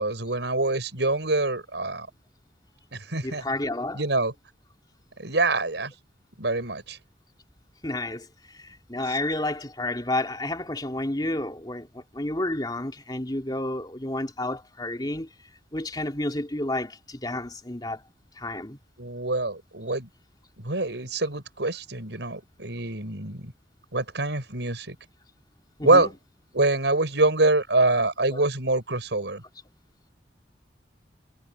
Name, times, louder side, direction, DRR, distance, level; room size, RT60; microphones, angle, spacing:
voice 1, 0.0-2.1 2.9-3.4 3.9-4.3 5.2-5.9 6.4-7.0 19.0-20.1 20.6-23.5 23.9-25.0 25.8-26.1 26.5-29.4, right 2 dB, 90° right, 5.4 m, -25 dB
voice 2, 3.2-4.0 7.8-15.3 15.7-18.0 18.4-18.8 25.8-26.1 28.3-28.4, left 1 dB, 25° left, 2.9 m, -30 dB
head